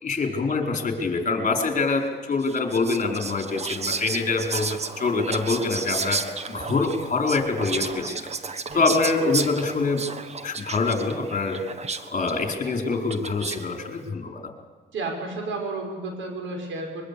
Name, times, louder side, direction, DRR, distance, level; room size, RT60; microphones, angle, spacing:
voice 1, 0.0-10.0 10.4-11.8 12.1-14.4, left 3 dB, 40° left, 3 dB, 4.5 m, -25 dB
Whispering, 2.4-13.7, right 4 dB, 35° right, 1.3 m, -33 dB
voice 2, 14.9-17.0, right 3 dB, 75° right, 3 dB, 6.3 m, -32 dB
23.5 x 22.5 x 8.5 m, 1.4 s
cardioid pair, 90°, 20 cm